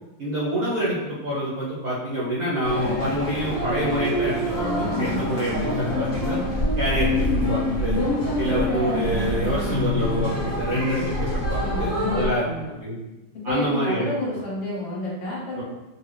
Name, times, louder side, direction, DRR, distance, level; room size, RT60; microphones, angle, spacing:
voice 1, 0.2-6.4 6.8-8.0 8.4-12.5 12.8-13.0 13.4-14.1 15.6-15.7, right 1 dB, 60° right, -8 dB, 0.9 m, -27 dB
sound 1, 2.6-12.3, left 1 dB, 35° left, 0.8 m, -26 dB
sound 2, 3.6-12.3, left 1 dB, 5° left, 0.6 m, -35 dB
voice 2, 11.6-12.7 13.5-15.6, left 2 dB, 65° left, -7 dB, 1.9 m, -30 dB
4.3 x 2.3 x 3.2 m, 1.1 s
omnidirectional pair, 2.4 m